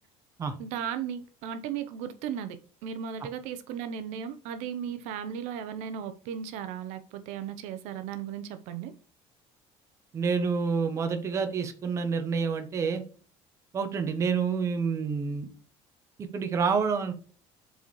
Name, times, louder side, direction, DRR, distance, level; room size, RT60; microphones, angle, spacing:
voice 1, 0.6-8.9, right 8 dB, 75° right, 0.7 m, -36 dB
voice 2, 10.1-13.0 13.7-15.5 16.2-17.1, right 5 dB, 25° right, 0.8 m, -28 dB
7.2 x 4.2 x 3.2 m
cardioid pair, 180°, 12 cm